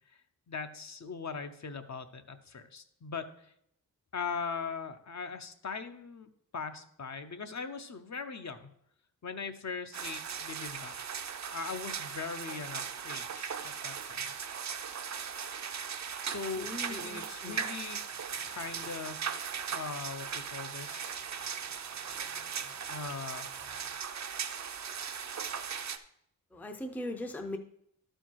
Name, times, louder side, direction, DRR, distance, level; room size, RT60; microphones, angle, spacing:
voice 1, 0.5-3.3 4.1-8.7 9.2-10.9 11.5-14.3 16.2-18.0 18.4-19.2 19.7-21.2 22.9-23.5, left 5 dB, 45° left, 8 dB, 0.7 m, -40 dB
sound 1, 9.9-26.0, right 7 dB, 50° right, 0.5 m, -38 dB
voice 2, 16.6-17.6 19.6-19.8 21.9-22.0 22.3-23.0 23.7-24.0 26.5-27.6, left 1 dB, 5° left, 5 dB, 0.5 m, -41 dB
12.5 x 4.5 x 4.5 m, 0.72 s
wide cardioid pair, 170°, 37 cm